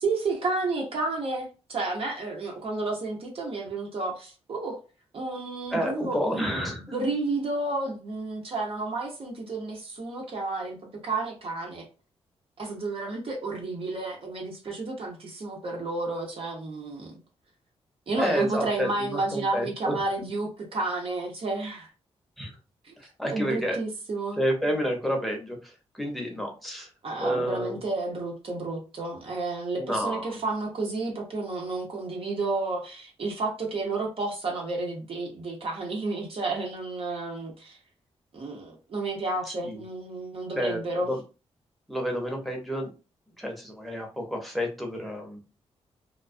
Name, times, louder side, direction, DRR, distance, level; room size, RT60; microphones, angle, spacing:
voice 1, 0.0-4.8 5.1-10.8 11.0-11.9 12.6-17.2 18.1-21.9 22.8-22.9 23.3-24.4 27.0-37.8 38.3-41.1, right 3 dB, 55° right, 0 dB, 0.9 m, -31 dB
voice 2, 5.7-6.8 18.2-20.0 22.4-22.5 23.0-23.8 24.4-25.6 25.9-26.9 27.2-27.8 29.8-30.2 39.6-39.8 40.5-41.2 41.9-42.9 43.4-45.4, equal, ahead, 1 dB, 0.9 m, -29 dB
2.3 x 2.3 x 2.5 m, 0.32 s
cardioid pair, 80°, 11 cm